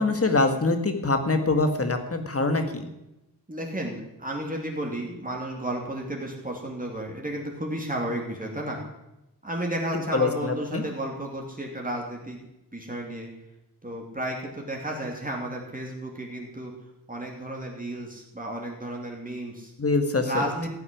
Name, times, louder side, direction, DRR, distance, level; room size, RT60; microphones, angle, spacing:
voice 1, 0.0-2.9 10.1-10.8 19.8-20.4, left 3 dB, 35° left, 7 dB, 1.9 m, -24 dB
voice 2, 3.5-8.8 9.4-12.4 12.7-13.3 13.8-16.7 17.1-19.7 20.2-20.7, right 1 dB, 20° right, -1 dB, 2.7 m, -33 dB
16.0 x 7.2 x 10.0 m, 0.91 s
wide cardioid pair, 115°, 40 cm